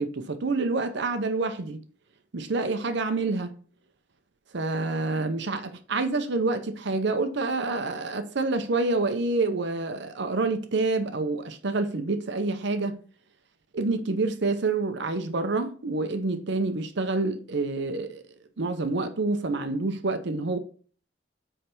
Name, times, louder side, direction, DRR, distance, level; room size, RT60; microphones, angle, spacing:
voice 1, 0.0-1.8 2.3-3.5 4.5-13.0 13.7-18.2 18.6-20.6, right 3 dB, 60° right, 0.7 m, -27 dB
8.6 x 3.3 x 5.3 m
head